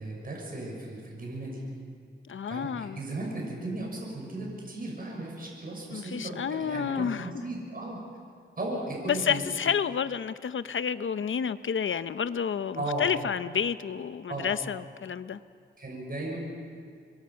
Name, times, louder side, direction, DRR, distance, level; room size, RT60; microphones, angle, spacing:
voice 1, 0.0-1.6 2.5-8.0 8.6-9.5 12.7-13.1 14.3-14.5 15.8-16.4, right 1 dB, 45° right, 6.1 m, -36 dB
voice 2, 2.3-3.0 5.9-7.3 9.1-15.4, left 7 dB, 75° left, 0.7 m, -30 dB
26.0 x 23.0 x 5.7 m
wide cardioid pair, 80°, 20 cm